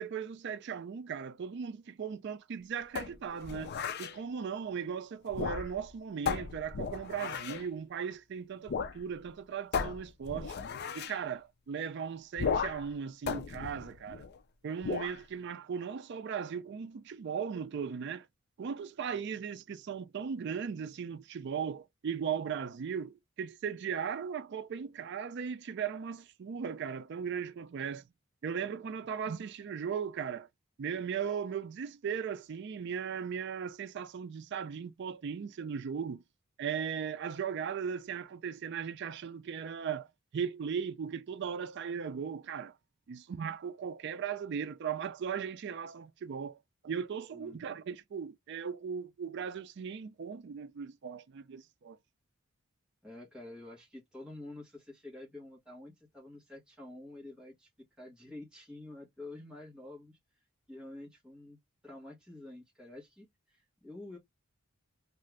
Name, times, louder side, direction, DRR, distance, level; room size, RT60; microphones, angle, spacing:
voice 1, 0.0-3.7 4.0-10.6 10.9-14.3 14.6-18.3 18.6-28.0 28.4-30.5 30.8-36.2 36.6-40.1 40.3-42.8 43.1-46.6 46.8-52.0, right 7 dB, 55° right, 0.4 m, -37 dB
sound 1, 2.9-4.2 5.3-5.9 6.3-7.7 8.7-9.0 9.2-9.3 9.7-11.2 12.4-12.9 13.3-14.4 14.8-15.2, left 6 dB, 50° left, 0.4 m, -35 dB
voice 2, 53.0-57.7 58.0-60.2 60.7-61.6 61.8-64.2, left 2 dB, 5° right, 1.2 m, -48 dB
2.6 x 2.4 x 3.2 m
head